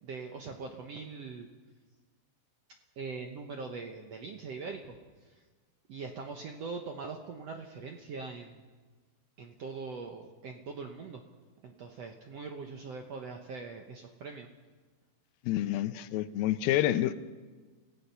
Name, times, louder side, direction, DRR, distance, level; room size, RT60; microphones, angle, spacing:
voice 1, 0.0-1.5 3.0-5.0 5.2-5.3 5.9-8.5 9.4-11.2 11.6-14.5, right 4 dB, 70° right, 3 dB, 1.6 m, -42 dB
voice 2, 15.4-17.1, left 13 dB, 80° left, 12 dB, 2.6 m, -28 dB
29.0 x 16.5 x 5.6 m, 1.4 s
omnidirectional pair, 4.3 m